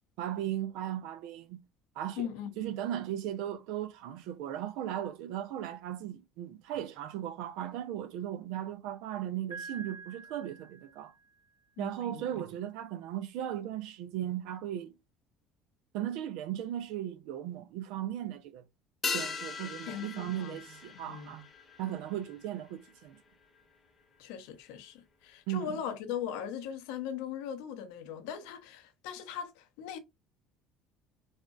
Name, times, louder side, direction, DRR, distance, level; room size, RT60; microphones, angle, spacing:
voice 1, 0.2-1.6 2.0-2.3 2.6-11.1 11.8-14.9 15.9-18.6 19.1-21.5 21.8-23.2 25.5-25.8, right 11 dB, 60° right, 0.6 m, -37 dB
voice 2, 2.2-2.7 11.8-12.2 19.9-20.6 20.9-21.3 24.2-30.0, left 9 dB, 60° left, 0.6 m, -39 dB
Piano, 9.5-11.4, right 4 dB, 80° right, 1.6 m, -47 dB
sound 1, 19.0-23.8 24.0-24.1, left 5 dB, 25° left, 1.0 m, -40 dB
4.2 x 3.3 x 2.5 m
figure-of-eight pair, 60°, 0 cm